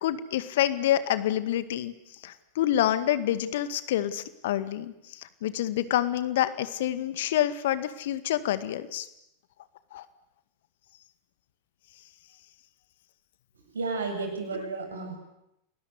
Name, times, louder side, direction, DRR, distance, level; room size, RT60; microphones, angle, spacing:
voice 1, 0.0-1.9 2.2-9.1 9.9-10.0, left 12 dB, 55° left, 13 dB, 2.0 m, -27 dB
voice 2, 13.7-15.2, right 3 dB, 70° right, 4 dB, 7.9 m, -32 dB
29.5 x 20.5 x 9.6 m, 0.81 s
figure-of-eight pair, 90°, 0 cm